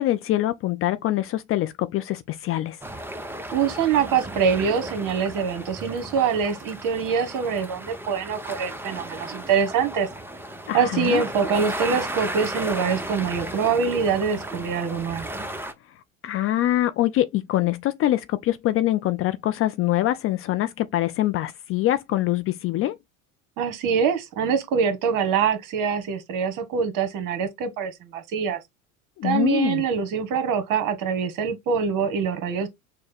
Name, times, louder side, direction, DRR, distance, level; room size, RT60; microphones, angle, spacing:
voice 1, 0.0-2.8 10.7-11.2 16.2-23.0 29.2-29.8, left 14 dB, 35° left, 0.4 m, -24 dB
sound 1, 2.8-15.7, right 1 dB, 5° right, 0.7 m, -35 dB
voice 2, 3.5-10.1 10.7-15.3 23.6-28.6 29.2-32.7, right 6 dB, 50° right, 1.4 m, -24 dB
6.2 x 2.2 x 3.4 m
hypercardioid pair, 80°, 42 cm